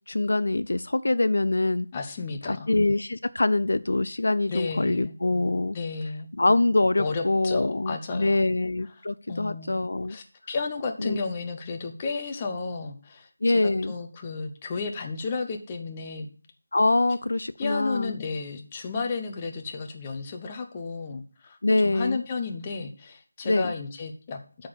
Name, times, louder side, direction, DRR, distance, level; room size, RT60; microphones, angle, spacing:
voice 1, 0.1-1.9 2.5-5.8 6.4-10.2 11.0-11.2 13.4-13.9 16.7-18.1 21.6-22.2 23.4-23.7, left 2 dB, 70° left, 16 dB, 0.4 m, -24 dB
voice 2, 1.9-2.7 4.5-5.1 5.7-6.3 7.0-8.5 9.3-9.8 10.1-16.3 17.6-24.7, left 4 dB, 20° left, 4 dB, 0.8 m, -33 dB
8.3 x 3.9 x 6.9 m, 0.40 s
figure-of-eight pair, 170°, 0 cm